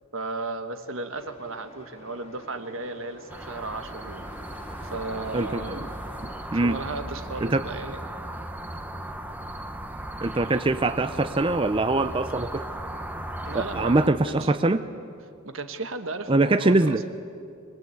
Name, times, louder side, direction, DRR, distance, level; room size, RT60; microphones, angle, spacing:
voice 1, 0.1-5.8 6.5-8.1 8.7-8.9 13.4-14.5 15.4-17.0, right 3 dB, 75° right, 8 dB, 1.4 m, -35 dB
sound 1, 1.2-6.6, left 1 dB, 30° left, 2.2 m, -48 dB
sound 2, 3.3-14.1, right 1 dB, 10° right, 1.0 m, -37 dB
voice 2, 5.3-5.8 6.5-6.8 7.4-7.6 10.2-12.6 13.5-14.9 16.3-17.0, right 2 dB, 25° right, 10 dB, 0.5 m, -23 dB
23.0 x 20.0 x 8.4 m, 2.5 s
head